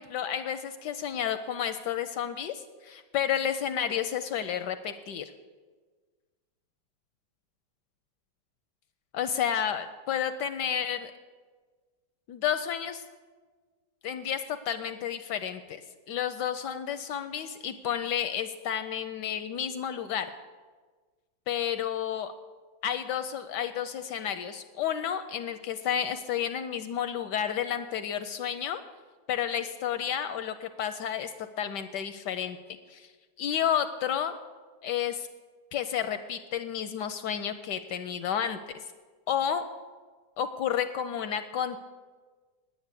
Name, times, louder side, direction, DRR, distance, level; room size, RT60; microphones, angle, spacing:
voice 1, 0.0-5.3 9.1-11.1 12.3-13.0 14.0-15.8 16.1-20.3 21.5-22.3 22.8-28.8 29.3-32.6 32.9-33.1 33.4-34.3 34.8-35.3 35.7-38.8 39.3-39.6 40.4-41.8, left 9 dB, 75° left, 10 dB, 1.0 m, -31 dB
10.0 x 9.2 x 8.2 m, 1.4 s
omnidirectional pair, 2.2 m